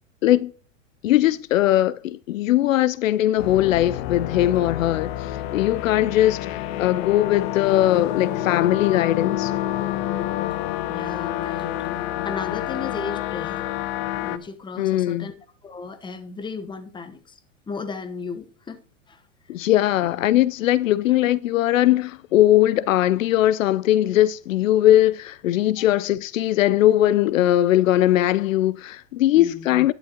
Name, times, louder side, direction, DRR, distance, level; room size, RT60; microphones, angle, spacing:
voice 1, 1.0-9.5 14.8-15.3 19.5-29.9, left 13 dB, 75° left, 0.5 m, -20 dB
sound 1, 3.4-14.4, left 13 dB, 50° left, 1.0 m, -28 dB
voice 2, 10.9-11.9 12.2-13.6 14.2-15.3 15.6-17.4 17.7-18.8 19.1-19.2 21.1-21.2 29.4-29.7, left 4 dB, 10° left, 1.0 m, -35 dB
11.5 x 10.0 x 2.9 m
hypercardioid pair, 115°, 40 cm